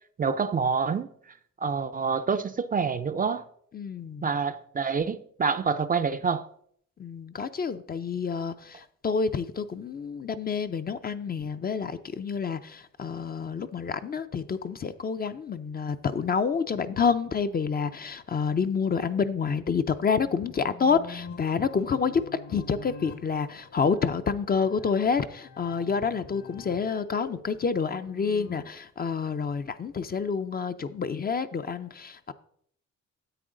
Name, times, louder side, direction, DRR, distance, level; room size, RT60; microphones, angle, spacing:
voice 1, 0.2-1.1 1.6-3.4 4.2-6.5, right 5 dB, 30° right, 0.4 m, -27 dB
voice 2, 3.7-4.3 7.0-22.2 22.5-32.3, left 5 dB, 30° left, 0.5 m, -28 dB
sound 1, 19.8-28.6, left 4 dB, 70° left, 1.6 m, -46 dB
10.0 x 7.8 x 3.8 m
cardioid pair, 90°, 30 cm